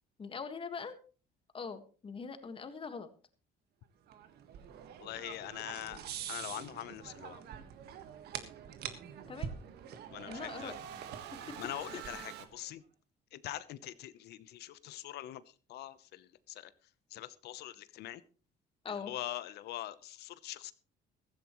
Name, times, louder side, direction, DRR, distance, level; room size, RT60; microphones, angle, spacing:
voice 1, 0.2-1.0 1.5-3.1 9.3-9.5 10.3-11.0 11.5-11.6 12.1-12.2 18.8-19.1, left 5 dB, 30° left, 9 dB, 1.7 m, -42 dB
sound 1, 4.1-12.6, right 8 dB, 70° right, 1.6 m, -46 dB
sound 2, 4.7-5.6 9.3-12.5, right 9 dB, 85° right, 1.6 m, -48 dB
voice 2, 5.0-6.0 6.3-7.4 10.1-10.7 11.6-12.8 13.3-16.7 17.1-18.2 18.9-20.7, left 14 dB, 75° left, 16 dB, 0.9 m, -43 dB
15.5 x 15.0 x 3.1 m, 0.37 s
cardioid pair, 110°, 17 cm